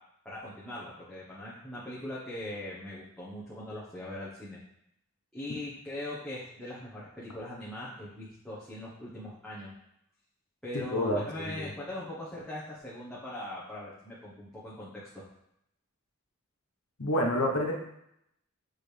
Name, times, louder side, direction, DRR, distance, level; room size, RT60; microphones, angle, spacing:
voice 1, 0.2-4.6 5.3-9.7 10.6-15.2, left 1 dB, 5° left, -10 dB, 1.1 m, -41 dB
voice 2, 10.9-11.7 17.0-17.7, left 1 dB, 90° left, 1 dB, 1.2 m, -28 dB
6.6 x 4.5 x 3.4 m, 0.79 s
head